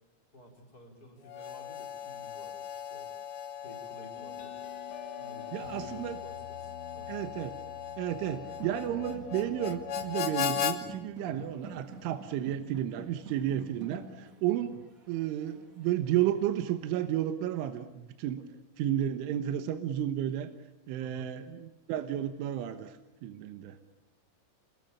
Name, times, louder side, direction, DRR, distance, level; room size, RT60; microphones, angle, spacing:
voice 1, 0.3-3.1 3.6-4.7 5.2-7.1 11.2-11.5 14.6-14.8 18.4-18.5 21.0-21.4, left 1 dB, 20° left, 2 dB, 4.2 m, -52 dB
Harmonica, 1.3-10.8, left 8 dB, 60° left, 2.4 m, -38 dB
sound 1, 4.2-11.3, left 8 dB, 80° left, 4.6 m, -50 dB
voice 2, 5.5-6.2 7.1-7.6 8.0-14.7 15.1-18.4 18.8-20.5 20.9-23.8, right 11 dB, 75° right, 8 dB, 3.5 m, -32 dB
sound 2, 8.2-17.1, right 3 dB, 25° right, 1.8 m, -49 dB
27.5 x 22.5 x 8.6 m, 0.96 s
omnidirectional pair, 5.8 m